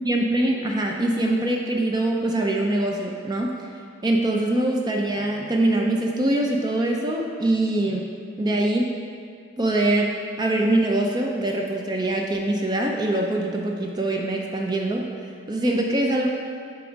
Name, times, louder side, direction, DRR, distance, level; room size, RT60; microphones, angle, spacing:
voice 1, 0.0-3.5 4.0-8.1 8.4-8.9 9.6-15.1 15.5-16.3, right 1 dB, 20° right, 0 dB, 0.4 m, -23 dB
8.6 x 3.4 x 5.1 m, 2.3 s
head